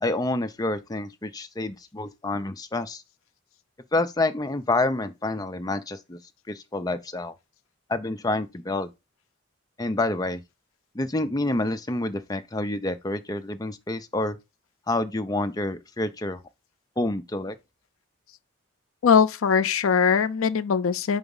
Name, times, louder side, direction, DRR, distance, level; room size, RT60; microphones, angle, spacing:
voice 1, 0.0-3.0 3.9-6.2 6.5-7.3 7.9-8.9 9.8-10.4 10.9-14.4 14.9-16.4 17.0-17.6, left 2 dB, 20° left, 0.5 m, -28 dB
voice 2, 19.0-21.2, left 6 dB, 75° left, 0.4 m, -21 dB
4.8 x 4.0 x 5.3 m
head